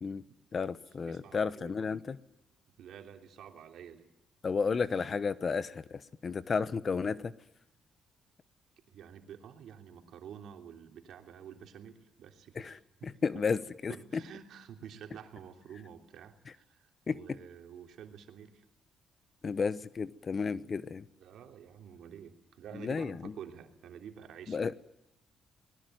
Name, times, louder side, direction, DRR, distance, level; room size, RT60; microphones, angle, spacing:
voice 1, 0.5-2.2 4.4-7.3 12.6-12.8 13.0-14.2 17.1-17.4 19.4-21.0 22.7-23.3 24.5-24.7, left 5 dB, 40° left, 1.0 m, -32 dB
voice 2, 1.0-1.8 2.8-4.1 8.9-13.5 13.9-18.6 21.2-24.6, right 8 dB, 75° right, 3.1 m, -49 dB
25.5 x 20.5 x 9.3 m
cardioid pair, 90°, 0 cm